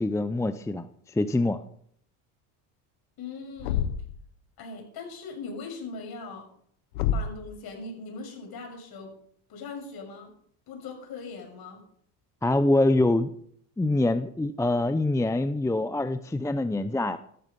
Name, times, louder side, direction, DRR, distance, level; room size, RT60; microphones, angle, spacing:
voice 1, 0.0-1.6 12.4-13.3 13.8-17.2, left 2 dB, 5° left, 11 dB, 0.7 m, -25 dB
voice 2, 3.2-3.9 4.6-6.5 7.1-9.1 9.5-10.3 10.7-11.8, left 4 dB, 50° left, 3 dB, 6.7 m, -40 dB
Thump thud, 3.6-4.2 6.9-7.5, left 8 dB, 85° left, 1.2 m, -28 dB
14.5 x 12.5 x 5.4 m, 0.63 s
supercardioid pair, 90°, 46 cm